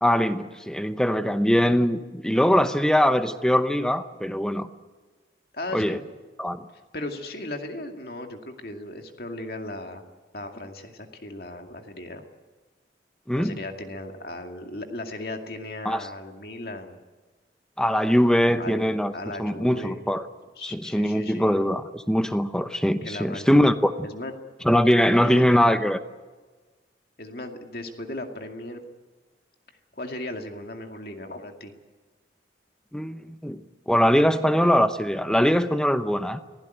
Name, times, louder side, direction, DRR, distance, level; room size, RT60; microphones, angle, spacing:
voice 1, 0.0-4.7 5.7-6.0 6.4-6.6 13.3-13.6 15.8-16.0 17.8-19.1 19.4-20.2 20.6-24.1 24.6-26.0 32.9-33.6 33.9-36.4, equal, 5° left, 9 dB, 0.9 m, -22 dB
voice 2, 5.5-6.0 6.9-10.0 10.3-12.2 13.4-17.0 18.6-18.9 19.1-20.0 20.6-21.6 23.0-23.7 24.0-24.3 25.2-25.6 27.2-28.8 29.9-31.7, left 1 dB, 55° left, 4 dB, 2.4 m, -36 dB
24.5 x 16.0 x 9.3 m, 1.3 s
head